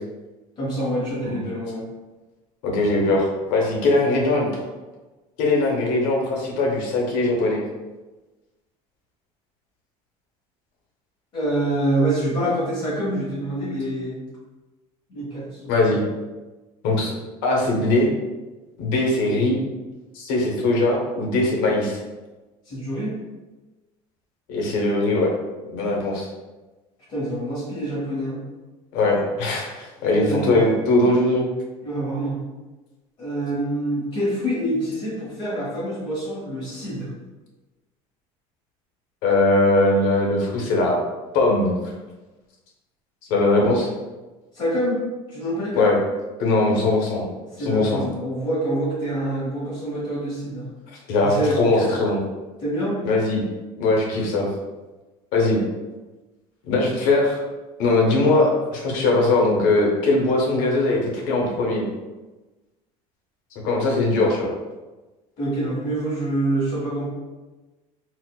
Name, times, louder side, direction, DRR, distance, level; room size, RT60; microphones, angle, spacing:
voice 1, 0.6-1.8 11.3-14.2 15.1-15.9 22.7-23.2 27.1-28.4 30.0-30.5 31.8-32.4 33.2-37.1 44.5-45.0 45.3-45.9 47.5-50.7 51.2-51.9 52.6-53.0 65.4-67.0, right 1 dB, 40° left, -7 dB, 1.1 m, -26 dB
voice 2, 2.6-4.6 5.4-7.6 15.7-16.0 16.8-17.1 17.4-18.1 18.8-19.6 20.1-22.0 24.5-25.3 25.7-26.3 28.9-31.5 39.2-40.9 41.3-41.8 43.3-43.9 45.8-45.9 46.4-47.2 47.6-48.0 51.1-52.2 53.0-53.4 53.8-54.5 55.3-55.6 56.7-57.4 57.8-61.8 63.6-64.5, left 2 dB, 75° left, -1 dB, 0.8 m, -20 dB
4.1 x 2.1 x 2.3 m, 1.2 s
cardioid pair, 165°, 13 cm